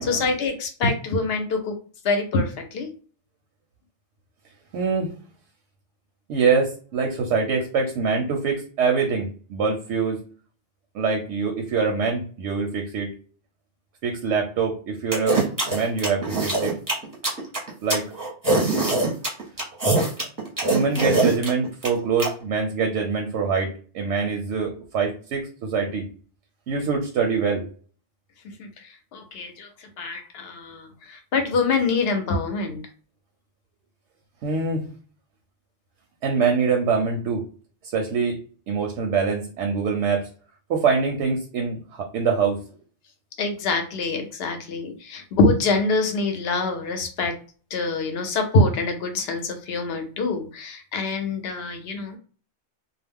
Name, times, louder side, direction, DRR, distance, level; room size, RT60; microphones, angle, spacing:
voice 1, 0.0-1.8 2.0-2.9 28.4-32.8 43.4-47.4 47.7-52.2, left 3 dB, 65° left, 6 dB, 0.8 m, -25 dB
voice 2, 4.7-5.1 6.3-10.2 10.9-13.1 14.0-16.8 17.8-18.1 20.7-26.1 26.7-27.7 34.4-34.9 36.2-37.5 37.9-38.4 38.7-40.3 40.7-42.6, right 5 dB, 85° right, 2 dB, 0.9 m, -24 dB
sound 1, 15.1-22.3, right 2 dB, 20° right, 0.7 m, -22 dB
2.3 x 2.0 x 3.5 m, 0.40 s
omnidirectional pair, 1.2 m